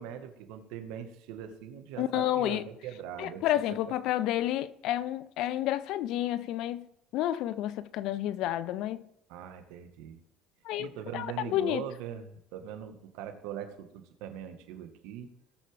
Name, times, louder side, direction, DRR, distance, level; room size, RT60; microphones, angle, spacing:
voice 1, 0.0-3.4 9.3-10.2 10.8-15.3, right 9 dB, 75° right, 1.5 m, -41 dB
voice 2, 2.0-2.7 3.2-6.9 7.1-9.1 10.6-11.8, left 13 dB, 65° left, 0.6 m, -30 dB
18.5 x 6.6 x 3.4 m
hypercardioid pair, 70°, 0 cm